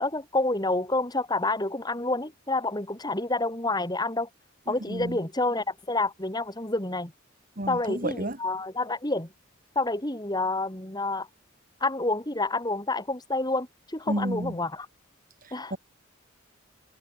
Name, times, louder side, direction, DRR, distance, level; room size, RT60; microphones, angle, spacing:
voice 1, 0.0-4.3 4.7-7.1 7.7-9.3 9.7-11.3 11.8-14.9 15.5-15.7, left 2 dB, 20° left, 3.4 m, -28 dB
voice 2, 4.7-5.2 7.6-8.4 14.1-14.6 15.7-15.8, right 1 dB, 40° right, 4.0 m, -31 dB
head